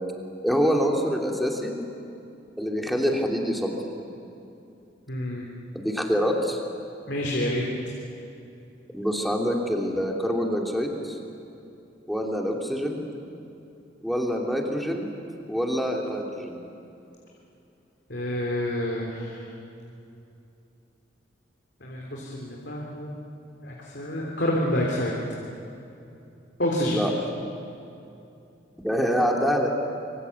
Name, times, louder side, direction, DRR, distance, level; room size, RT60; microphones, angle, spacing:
voice 1, 0.4-1.8 2.6-3.9 5.7-6.6 8.9-11.2 12.1-13.0 14.0-15.1 15.5-16.6 26.8-27.1 28.8-29.8, equal, ahead, 0 dB, 2.8 m, -25 dB
voice 2, 5.1-5.5 7.1-7.6 18.1-19.5 21.8-23.2 23.6-25.1 26.6-27.0, left 1 dB, 60° left, -2 dB, 3.4 m, -28 dB
25.5 x 25.0 x 8.4 m, 2.7 s
head